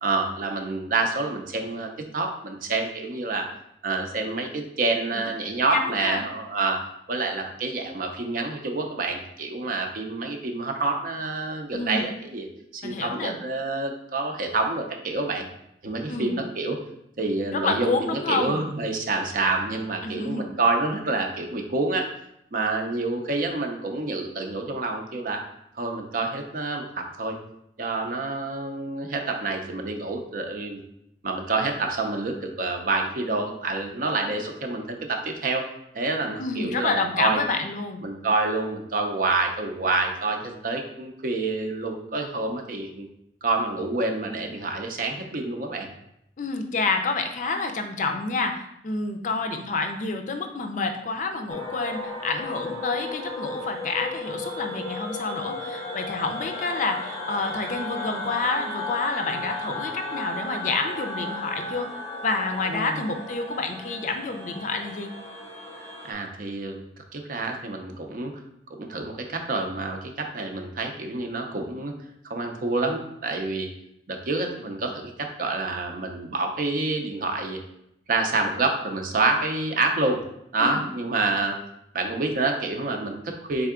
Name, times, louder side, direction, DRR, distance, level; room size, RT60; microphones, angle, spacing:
voice 1, 0.0-3.4 3.8-6.8 7.1-12.5 12.7-15.5 15.8-16.8 17.2-22.1 22.5-25.4 25.7-27.4 27.8-30.8 31.2-35.6 35.9-37.4 38.0-43.1 43.4-45.9 62.7-63.0 66.0-68.3 68.7-71.9 72.2-73.7 74.1-77.6 78.1-80.2 80.5-81.6 81.9-83.7, right 3 dB, 50° right, 3 dB, 0.5 m, -27 dB
voice 2, 5.7-6.2 11.7-12.0 12.8-13.4 16.1-16.4 17.5-18.6 20.0-20.5 36.4-38.0 46.4-61.9 62.2-65.1 80.6-80.8, left 3 dB, 45° left, 5 dB, 0.4 m, -28 dB
sound 1, 51.5-66.1, left 2 dB, 15° left, 0.7 m, -34 dB
3.6 x 3.4 x 3.6 m, 0.78 s
head